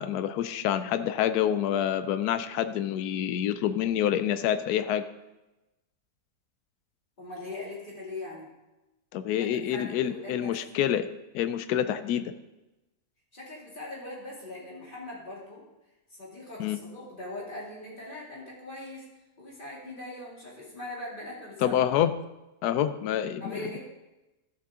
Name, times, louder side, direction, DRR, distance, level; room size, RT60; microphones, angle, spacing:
voice 1, 0.0-5.0 9.1-11.1 11.3-12.3 16.6-16.8 21.6-22.1 22.6-23.8, left 10 dB, 90° left, 11 dB, 1.1 m, -27 dB
voice 2, 7.2-8.5 9.3-10.6 13.3-15.6 16.1-19.1 19.4-21.9 23.4-23.8, left 1 dB, 35° left, -5 dB, 2.8 m, -41 dB
13.5 x 6.4 x 3.7 m, 1.0 s
omnidirectional pair, 1.6 m